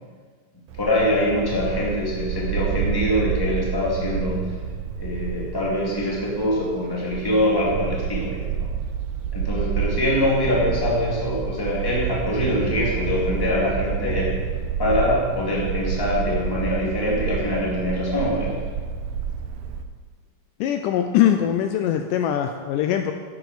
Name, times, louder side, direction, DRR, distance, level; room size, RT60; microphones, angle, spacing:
Bark, 0.7-19.8, right 7 dB, 90° right, 2.5 m, -29 dB
voice 1, 0.8-4.5 5.0-8.7 9.3-14.4 14.8-18.6, left 1 dB, 10° left, -5 dB, 1.8 m, -24 dB
voice 2, 20.6-23.1, left 10 dB, 80° left, 6 dB, 2.0 m, -22 dB
11.0 x 7.8 x 5.0 m, 1.5 s
omnidirectional pair, 3.9 m